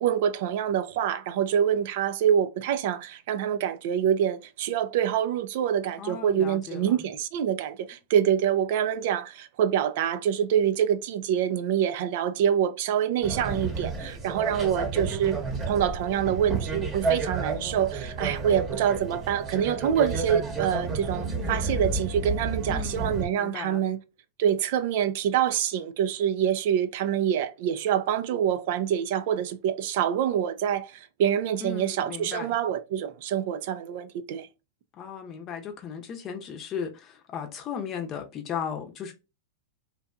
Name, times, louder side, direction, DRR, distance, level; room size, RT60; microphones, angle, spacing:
voice 1, 0.0-15.4 15.7-24.0 24.4-34.5, right 9 dB, 60° right, 0.3 m, -26 dB
voice 2, 6.0-7.0 22.7-23.8 31.6-32.5 34.9-39.1, left 7 dB, 35° left, 0.6 m, -36 dB
sound 1, 13.2-23.3, right 3 dB, 25° right, 0.9 m, -31 dB
2.6 x 2.2 x 2.4 m
hypercardioid pair, 110°, 0 cm